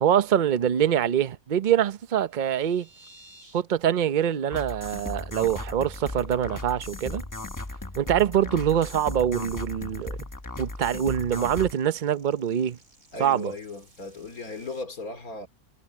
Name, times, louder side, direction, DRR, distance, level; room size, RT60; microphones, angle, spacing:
voice 1, 0.0-2.9 3.5-7.2 8.0-10.2 10.6-12.8 13.2-13.5, right 9 dB, 40° right, 0.7 m, -24 dB
sound 1, 2.0-3.7 4.0-4.2 4.6-4.7 5.0-5.3 5.7-6.1 6.5-14.8, right 2 dB, 65° right, 4.9 m, -57 dB
sound 2, 4.5-11.7, left 2 dB, 15° left, 0.8 m, -36 dB
voice 2, 13.1-15.5, left 3 dB, 70° left, 3.4 m, -37 dB
omnidirectional pair, 1.6 m